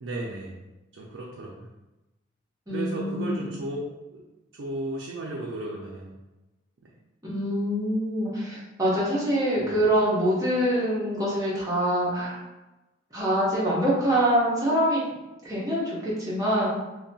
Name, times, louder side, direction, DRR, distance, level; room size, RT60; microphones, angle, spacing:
voice 1, 0.0-0.6 0.9-1.7 2.7-3.8 4.1-4.2 4.5-6.1 6.8-6.9 9.6-9.8, right 2 dB, 65° right, -3 dB, 0.4 m, -34 dB
voice 2, 2.7-3.4 7.2-12.4 13.1-15.0 15.4-16.7, equal, 20° right, -7 dB, 0.7 m, -25 dB
2.7 x 2.1 x 2.6 m, 1.0 s
head